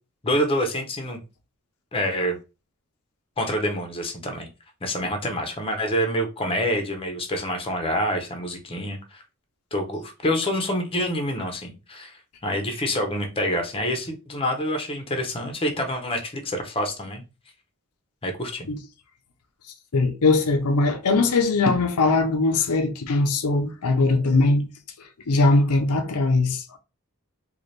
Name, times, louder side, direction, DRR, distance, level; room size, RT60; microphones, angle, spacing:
voice 1, 0.2-1.2 1.9-2.4 3.4-4.5 4.8-9.2 9.7-17.2 18.2-18.7, equal, 25° left, 0.7 m, -27 dB
voice 2, 19.9-24.7 25.3-26.8, left 3 dB, 85° left, 0.6 m, -21 dB
4.1 x 2.4 x 3.2 m
head